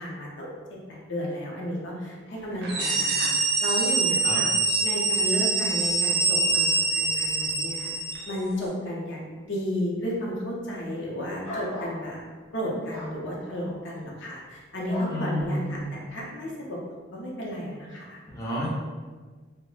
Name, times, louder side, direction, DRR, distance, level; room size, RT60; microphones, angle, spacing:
voice 1, 0.0-4.5 4.8-7.9 8.3-12.2 12.5-16.8 17.1-18.2, equal, 65° left, -3 dB, 0.6 m, -33 dB
sound 1, 2.6-8.3, right 3 dB, 50° right, 0.4 m, -24 dB
sound 2, 11.4-12.0 12.9-13.1 14.9-15.2, left 1 dB, 35° left, 0.8 m, -36 dB
voice 2, 15.1-15.9 18.3-18.7, equal, 15° left, -7 dB, 0.4 m, -30 dB
2.3 x 2.0 x 3.1 m, 1.4 s
head